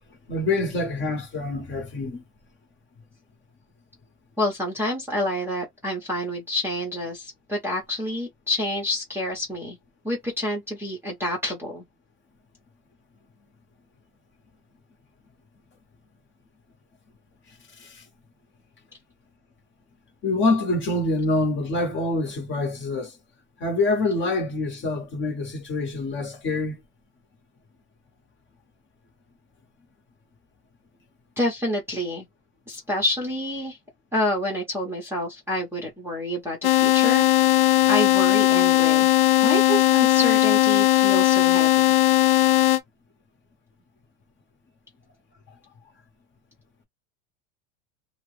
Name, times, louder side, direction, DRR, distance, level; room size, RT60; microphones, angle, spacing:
voice 1, 0.3-2.2 17.8-18.0 20.2-23.2 23.6-26.8, left 2 dB, 25° left, 0.9 m, -26 dB
voice 2, 4.4-9.8 10.0-11.8 31.4-32.3 32.7-33.8 34.1-37.3 37.9-39.1 39.4-42.0, left 1 dB, 5° right, 0.7 m, -28 dB
sound 1, 36.6-42.8, left 15 dB, 75° left, 0.7 m, -18 dB
2.8 x 2.0 x 3.0 m
supercardioid pair, 140°, 44 cm